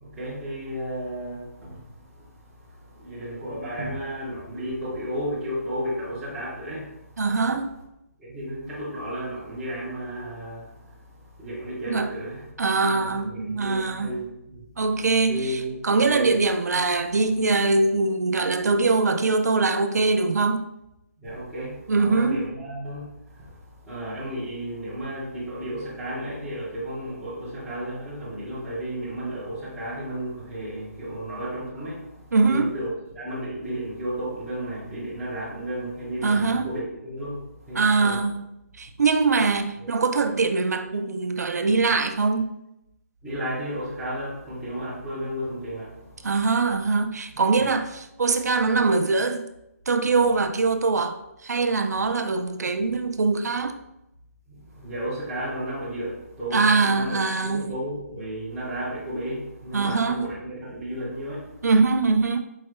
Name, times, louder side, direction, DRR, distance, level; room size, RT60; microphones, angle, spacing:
voice 1, 0.0-7.1 8.2-12.5 12.9-14.6 15.3-16.3 21.2-38.2 39.8-39.9 43.2-46.2 47.3-47.7 54.5-61.5, equal, ahead, -11 dB, 0.4 m, -33 dB
voice 2, 7.2-7.7 11.9-12.1 12.6-14.1 14.8-15.5 15.8-20.7 21.9-22.4 32.3-32.7 36.2-36.7 37.8-38.4 38.8-42.6 46.2-49.5 49.9-51.2 51.4-53.8 56.5-57.7 59.7-60.3 61.6-62.4, right 3 dB, 80° right, 8 dB, 0.5 m, -22 dB
4.7 x 2.2 x 4.2 m, 0.86 s
hypercardioid pair, 180°, 9 cm